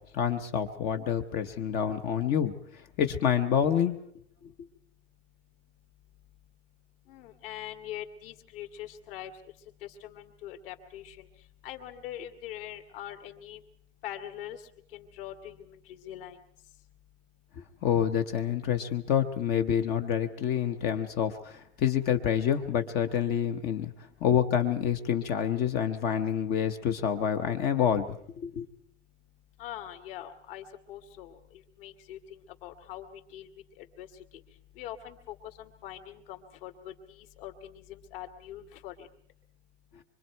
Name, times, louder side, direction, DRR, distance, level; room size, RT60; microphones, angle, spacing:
voice 1, 0.1-2.5 3.0-4.0 17.8-23.9 24.2-28.2 28.4-28.7, left 9 dB, 25° left, 7 dB, 1.0 m, -27 dB
voice 2, 7.1-9.3 9.8-11.3 11.6-13.6 14.0-14.6 14.9-16.4 29.6-33.5 33.8-34.1 34.8-39.1, left 11 dB, 50° left, 5 dB, 2.5 m, -43 dB
25.0 x 24.5 x 4.6 m, 0.65 s
supercardioid pair, 160°, 36 cm